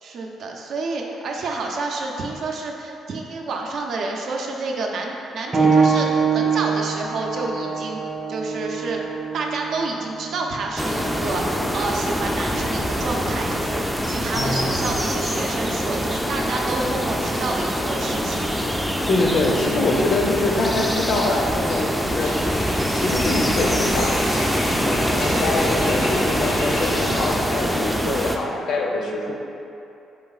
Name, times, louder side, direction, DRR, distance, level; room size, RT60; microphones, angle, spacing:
voice 1, 0.0-8.0 8.3-9.0 9.3-18.4 25.2-25.6, right 3 dB, 65° right, 0 dB, 0.5 m, -29 dB
sound 1, 5.5-15.8 16.7-16.8 17.6-17.7, right 5 dB, 30° right, 0.8 m, -26 dB
sound 2, 10.8-28.4, equal, ahead, 0.4 m, -24 dB
voice 2, 14.3-14.8 19.1-22.3 22.9-29.3, left 2 dB, 65° left, 0 dB, 0.6 m, -24 dB
sound 3, 19.9-27.2, left 1 dB, 90° left, 1.0 m, -34 dB
4.6 x 2.8 x 4.0 m, 2.8 s
cardioid pair, 90°, 0 cm